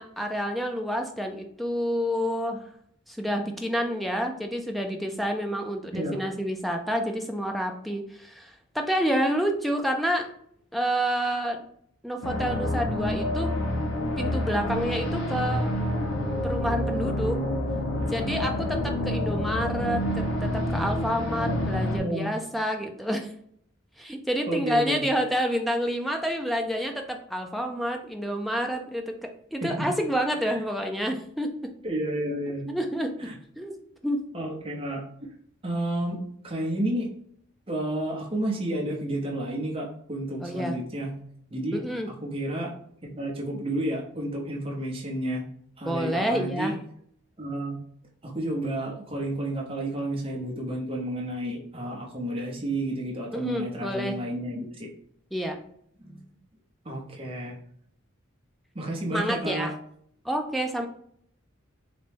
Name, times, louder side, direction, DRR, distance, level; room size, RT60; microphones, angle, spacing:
voice 1, 0.0-2.6 3.1-10.3 10.7-11.6 12.0-13.5 14.2-15.7 16.4-17.4 18.1-23.3 24.0-29.1 29.5-31.5 32.7-33.2 33.6-33.8 34.0-34.2 40.4-40.8 41.7-42.1 45.9-46.7 53.3-54.2 55.3-55.6 59.1-59.7 60.2-60.9, equal, ahead, 3 dB, 0.3 m, -28 dB
sound 1, 12.2-22.0, left 1 dB, 75° left, 0.7 m, -28 dB
voice 2, 22.0-22.3 24.5-25.0 29.6-29.9 30.4-30.5 31.8-32.7 33.2-33.3 34.3-35.0 35.6-36.2 36.4-37.1 37.7-41.1 41.5-41.8 42.1-42.7 43.0-45.5 45.8-46.7 47.4-47.8 48.2-54.9 56.0-56.2 56.8-57.5 58.7-59.7, right 1 dB, 25° right, -2 dB, 0.8 m, -31 dB
3.9 x 2.2 x 3.3 m, 0.66 s
head